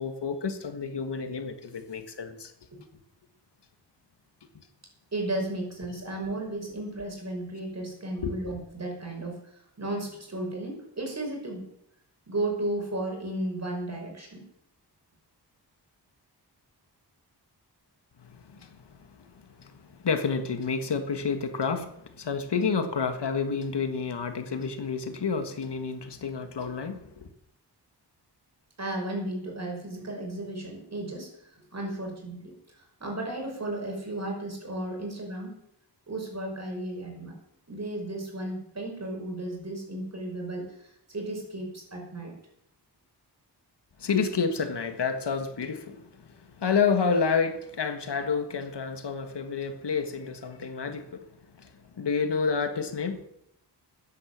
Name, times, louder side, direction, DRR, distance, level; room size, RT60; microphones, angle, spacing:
voice 1, 0.0-2.5 4.6-4.7 8.2-8.4 18.2-19.3 19.6-27.3 44.0-51.3 51.6-53.2, left 5 dB, 75° left, 1.7 m, -30 dB
voice 2, 5.1-11.7 12.3-14.4 28.8-35.6 36.1-37.3 37.7-42.3, right 1 dB, 40° right, 5.8 m, -34 dB
13.5 x 10.0 x 7.4 m
wide cardioid pair, 115°, 41 cm